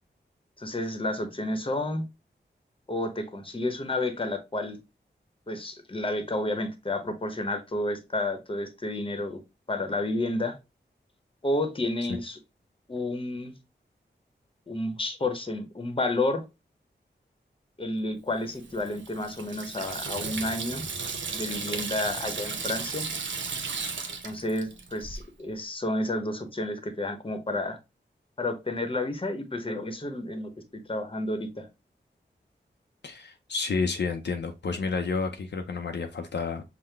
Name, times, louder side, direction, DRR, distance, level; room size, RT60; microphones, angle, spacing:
voice 1, 0.6-2.1 2.9-4.8 5.5-9.4 9.7-10.6 11.4-12.4 12.9-13.5 14.7-16.4 17.8-20.8 21.3-23.1 24.2-27.8 28.4-31.7, left 2 dB, 30° left, 0.9 m, -30 dB
Water tap faucet / Sink (filling or washing), 18.5-25.2, right 5 dB, 85° right, 0.7 m, -35 dB
voice 2, 33.0-36.6, left 4 dB, 70° left, 0.6 m, -30 dB
5.6 x 2.1 x 3.3 m
wide cardioid pair, 60°, 19 cm